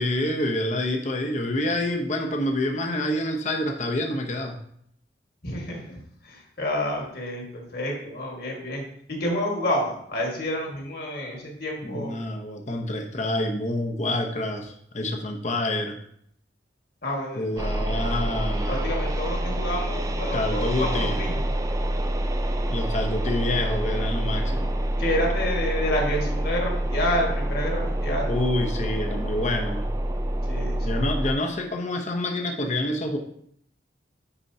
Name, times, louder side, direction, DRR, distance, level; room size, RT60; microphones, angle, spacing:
voice 1, 0.0-4.6 11.8-16.0 17.4-18.8 20.3-21.2 22.7-24.7 28.3-29.9 30.8-33.2, left 1 dB, 40° left, 3 dB, 0.8 m, -27 dB
voice 2, 5.4-5.8 6.2-8.8 9.1-12.1 17.0-17.5 18.7-21.4 25.0-28.3 30.4-31.0, left 1 dB, 60° left, -1 dB, 1.7 m, -29 dB
sound 1, 17.6-31.4, right 1 dB, 20° right, 0.4 m, -27 dB
9.8 x 4.4 x 2.7 m, 0.68 s
head